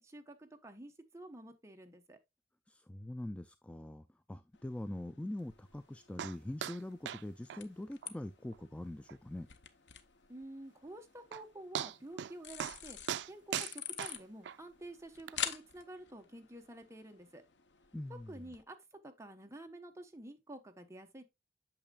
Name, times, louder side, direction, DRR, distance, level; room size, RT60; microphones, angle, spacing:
voice 1, 0.0-2.2 10.3-13.0 13.3-17.4 18.1-18.8 19.0-21.2, right 1 dB, 15° right, 1.0 m, -50 dB
voice 2, 2.7-9.5 17.9-18.4, left 1 dB, 5° left, 0.3 m, -43 dB
sound 1, 4.5-18.6, left 9 dB, 75° left, 0.8 m, -48 dB
sound 2, 6.2-6.4 6.6-6.8 7.1-7.2 7.5-7.6 8.0-8.1 8.5-8.6 9.1-9.2 10.9-11.0 11.3-11.4 11.7-12.3 12.6-12.8 13.1-14.6 15.3-15.4, right 9 dB, 75° right, 0.4 m, -39 dB
8.7 x 6.4 x 2.3 m
head